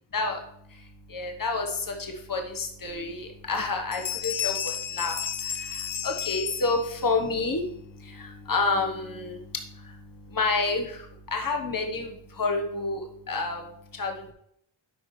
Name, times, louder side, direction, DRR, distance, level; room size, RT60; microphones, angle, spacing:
voice 1, 0.1-14.3, left 3 dB, 45° left, 3 dB, 1.4 m, -30 dB
sound 1, 2.9-3.0 3.4-3.7 3.9-7.1, left 9 dB, 65° left, 0.9 m, -33 dB
12.0 x 4.9 x 3.3 m, 0.72 s
cardioid pair, 55°, 46 cm